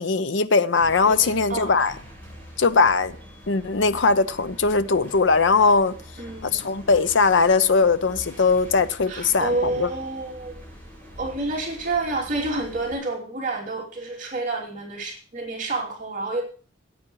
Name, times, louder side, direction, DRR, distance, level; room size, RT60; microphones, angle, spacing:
voice 1, 0.0-1.9 2.6-3.2 3.5-6.0 6.4-9.9, left 4 dB, 80° left, 0.7 m, -20 dB
sound 1, 0.7-13.0, equal, 10° left, 6.8 m, -44 dB
voice 2, 1.1-1.7 6.2-6.7 9.1-10.6 11.2-16.4, right 2 dB, 45° right, 2.9 m, -29 dB
17.5 x 8.8 x 3.1 m
head